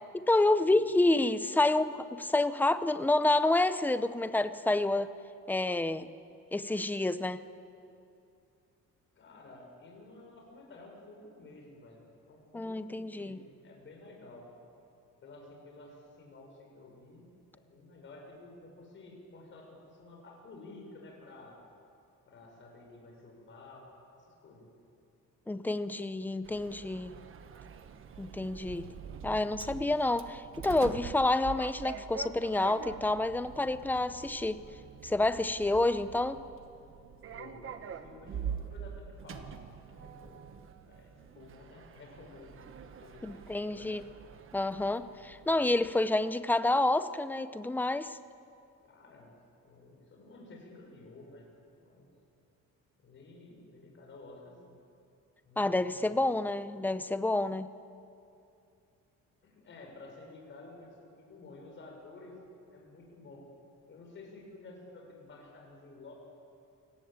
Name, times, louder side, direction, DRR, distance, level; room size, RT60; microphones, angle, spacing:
voice 1, 0.2-5.1 5.5-6.1 6.5-7.4 12.5-13.4 25.5-27.2 28.2-28.9 29.2-34.6 35.0-36.4 43.2-44.0 44.5-48.2 55.6-57.7, left 2 dB, 5° left, 12 dB, 0.6 m, -28 dB
voice 2, 9.2-14.5 15.2-21.6 22.3-24.7 37.2-39.5 39.9-40.5 40.8-41.1 41.3-44.2 48.8-49.3 49.6-51.5 51.8-52.1 53.0-54.7 55.4-56.2 59.4-62.4 62.7-63.5 63.9-66.1, left 2 dB, 40° left, 1 dB, 6.1 m, -52 dB
Sliding door, 26.4-46.0, right 7 dB, 40° right, 1.2 m, -45 dB
28.5 x 18.5 x 8.9 m, 2.6 s
cardioid pair, 180°, 31 cm